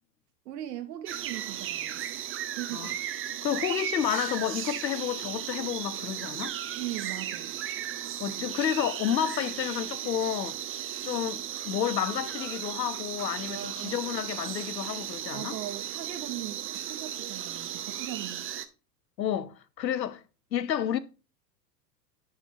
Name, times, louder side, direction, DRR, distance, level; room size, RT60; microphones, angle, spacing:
voice 1, 0.4-2.0 2.5-2.9 6.8-7.5 8.3-8.4 13.5-14.0 15.3-18.4, right 12 dB, 70° right, 1.6 m, -39 dB
sound 1, 1.1-18.7, right 11 dB, 25° right, 0.8 m, -36 dB
voice 2, 3.4-6.6 8.2-10.6 11.0-15.6 19.2-20.2 20.5-21.0, left 9 dB, 85° left, 0.8 m, -30 dB
11.0 x 4.0 x 4.8 m
hypercardioid pair, 95°, 50 cm